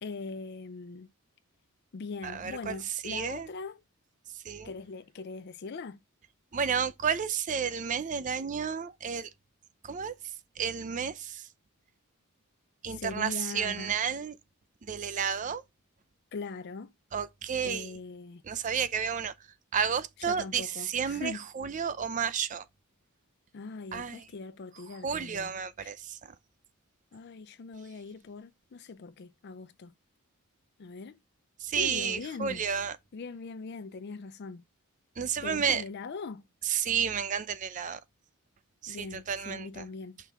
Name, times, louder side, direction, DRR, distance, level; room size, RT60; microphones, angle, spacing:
voice 1, 0.0-1.1 1.9-3.8 4.6-6.0 12.9-13.9 16.3-16.9 17.6-18.5 20.2-21.4 23.5-25.5 25.8-26.0 27.1-29.9 30.8-31.2 31.8-32.6 33.1-34.6 35.4-36.4 38.9-40.2, left 4 dB, 50° left, 0.4 m, -41 dB
voice 2, 2.2-2.8 3.0-3.5 4.4-4.7 6.5-9.3 9.8-10.1 10.6-11.5 12.8-14.4 14.8-15.6 17.1-17.9 18.5-19.3 19.7-22.6 23.9-24.2 25.0-26.2 31.6-33.0 35.2-35.8 36.7-38.0 38.8-39.8, right 7 dB, 35° right, 0.4 m, -31 dB
5.8 x 3.5 x 5.7 m
head